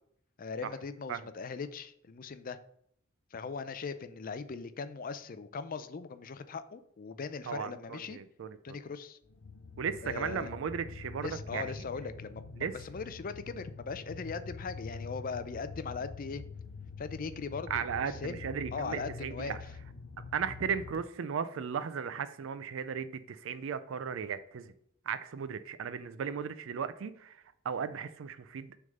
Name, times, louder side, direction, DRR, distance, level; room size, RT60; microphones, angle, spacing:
voice 1, 0.4-2.6 3.3-8.2 8.6-9.2 10.0-10.5 11.2-16.4 17.0-18.4 18.7-19.6, left 5 dB, 45° left, 12 dB, 0.5 m, -40 dB
voice 2, 7.5-8.8 9.8-11.8 12.6-12.8 17.7-19.6 20.3-24.7 25.1-28.8, right 6 dB, 70° right, 12 dB, 0.4 m, -36 dB
sound 1, 9.3-21.0, left 4 dB, 90° left, 0.7 m, -45 dB
6.4 x 3.6 x 5.2 m, 0.68 s
head